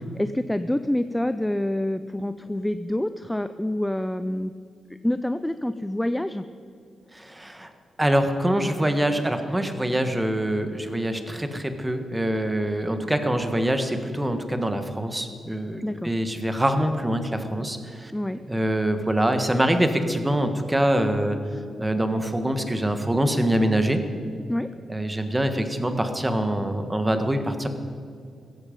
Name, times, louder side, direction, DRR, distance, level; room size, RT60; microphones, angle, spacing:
voice 1, 0.2-4.5 5.0-6.4 15.8-16.1 18.1-18.4 24.5-24.7, left 1 dB, 5° left, 11 dB, 0.4 m, -27 dB
voice 2, 7.1-7.7 8.0-18.1 18.5-21.4 21.8-24.0 24.9-27.7, right 1 dB, 10° right, 7 dB, 1.5 m, -24 dB
16.5 x 15.0 x 5.3 m, 2.4 s
cardioid pair, 110°, 0 cm